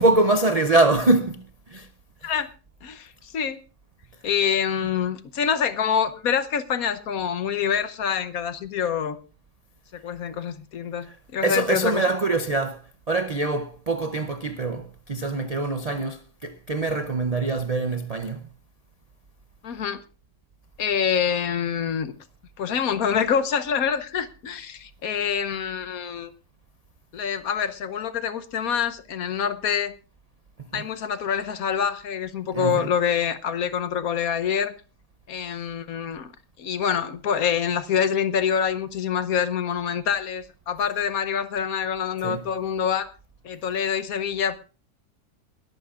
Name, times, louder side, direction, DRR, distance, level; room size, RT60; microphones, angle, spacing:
voice 1, 0.0-1.9 2.2-2.3 11.0-11.2 11.4-18.4 30.6-30.8 32.5-32.9 42.2-42.5, right 2 dB, 50° right, 0.4 m, -24 dB
voice 2, 2.8-3.6 4.2-9.2 9.9-12.0 19.6-20.0 20.8-22.1 22.6-26.3 27.1-29.9 30.7-34.7 35.3-36.3 36.6-43.1 43.4-44.6, left 7 dB, 70° left, 1.3 m, -26 dB
21.0 x 14.0 x 2.5 m
omnidirectional pair, 1.7 m